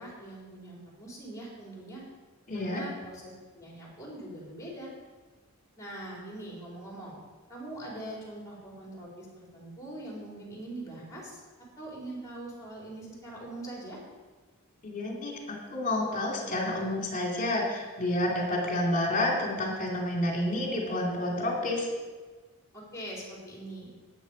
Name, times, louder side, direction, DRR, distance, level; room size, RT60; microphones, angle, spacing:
voice 1, 0.0-2.0 2.5-4.9 5.8-7.2 7.5-11.4 11.8-14.0 22.7-23.9, right 1 dB, 15° left, -4 dB, 4.2 m, -42 dB
voice 2, 2.5-2.8 14.8-21.9, left 1 dB, 40° left, -1 dB, 2.6 m, -29 dB
12.0 x 9.0 x 5.2 m, 1.4 s
head